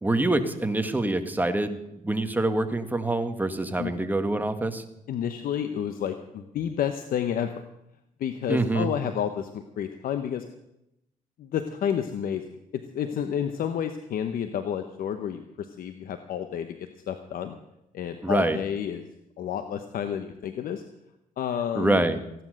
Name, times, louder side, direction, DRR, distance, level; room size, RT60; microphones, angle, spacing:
voice 1, 0.0-1.8 2.0-4.8 8.5-8.9 18.2-18.6 21.8-22.2, right 2 dB, 10° right, 7 dB, 1.7 m, -25 dB
voice 2, 5.1-7.5 8.2-10.4 11.4-12.4 12.7-16.8 17.1-17.6 17.9-19.1 19.4-20.8 21.4-22.0, left 9 dB, 70° left, 8 dB, 1.0 m, -30 dB
16.0 x 11.0 x 6.5 m, 0.84 s
cardioid pair, 80°, 15 cm